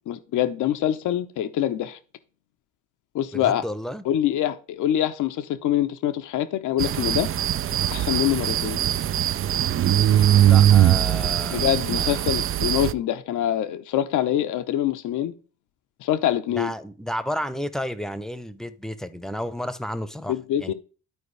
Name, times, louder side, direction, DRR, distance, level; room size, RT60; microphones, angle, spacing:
voice 1, 0.1-2.0 3.1-3.6 4.0-7.3 7.9-8.8 11.5-15.3 16.0-16.7 20.3-20.7, left 11 dB, 80° left, 0.8 m, -25 dB
voice 2, 3.3-4.0 10.5-12.2 16.5-20.7, equal, ahead, 0.8 m, -32 dB
sound 1, 6.8-12.9, right 11 dB, 45° right, 0.5 m, -21 dB
12.5 x 4.6 x 3.3 m
cardioid pair, 90°, 30 cm